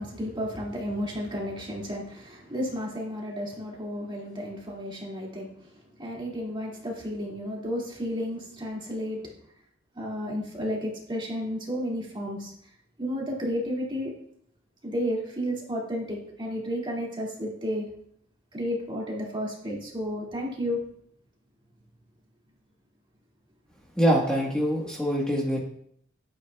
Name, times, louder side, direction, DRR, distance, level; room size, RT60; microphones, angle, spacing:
voice 1, 0.0-5.7 6.0-9.2 9.9-12.5 13.0-14.1 14.8-17.9 18.5-20.9, equal, 25° right, -3 dB, 2.2 m, -32 dB
voice 2, 24.0-25.6, equal, 5° left, -4 dB, 1.3 m, -24 dB
11.0 x 8.3 x 2.3 m, 0.67 s
head